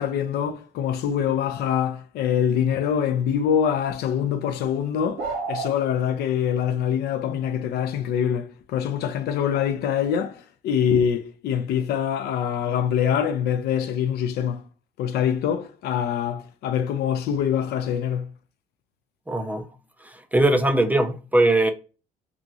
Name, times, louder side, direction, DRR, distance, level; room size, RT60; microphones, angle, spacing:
voice 1, 0.0-14.6 15.0-18.3, left 8 dB, 70° left, 0.4 m, -24 dB
sound 1, 5.2-5.7, right 4 dB, 85° right, 0.7 m, -29 dB
voice 2, 19.3-19.7 20.0-21.7, right 1 dB, 10° right, 0.3 m, -21 dB
2.9 x 2.4 x 2.5 m
cardioid pair, 110°, 17 cm